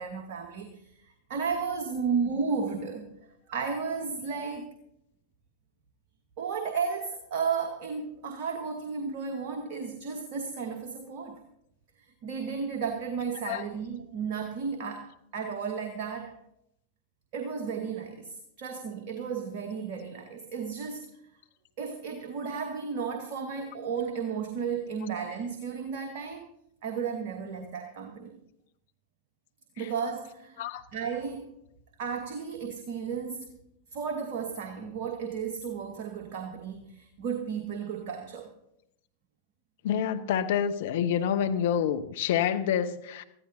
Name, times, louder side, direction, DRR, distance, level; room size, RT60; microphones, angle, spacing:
voice 1, 0.0-3.1 3.5-4.7 6.4-11.4 12.2-16.3 17.3-21.1 21.8-26.5 26.8-28.4 29.8-31.5 32.0-33.6 33.9-38.5, right 6 dB, 50° right, 5 dB, 1.3 m, -33 dB
voice 2, 39.8-43.2, left 9 dB, 55° left, 8 dB, 0.8 m, -27 dB
20.5 x 14.5 x 2.7 m, 0.78 s
figure-of-eight pair, 90°, 0 cm